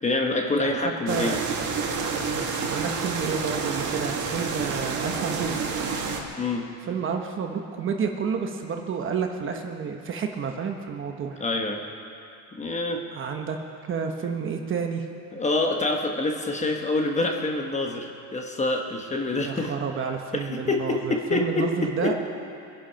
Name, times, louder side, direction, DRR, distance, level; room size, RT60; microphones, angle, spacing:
voice 1, 0.0-1.4 6.4-6.6 11.4-11.8 12.6-13.0 15.3-19.7 20.3-22.3, left 2 dB, 15° left, 2 dB, 1.2 m, -26 dB
voice 2, 0.6-1.7 2.7-5.5 6.9-11.4 13.1-13.6 13.9-15.1 19.4-22.3, right 6 dB, 30° right, 4 dB, 1.1 m, -30 dB
sound 1, 1.1-6.2, right 5 dB, 45° right, 2.0 m, -29 dB
23.0 x 10.5 x 5.7 m, 2.6 s
cardioid pair, 150°, 40 cm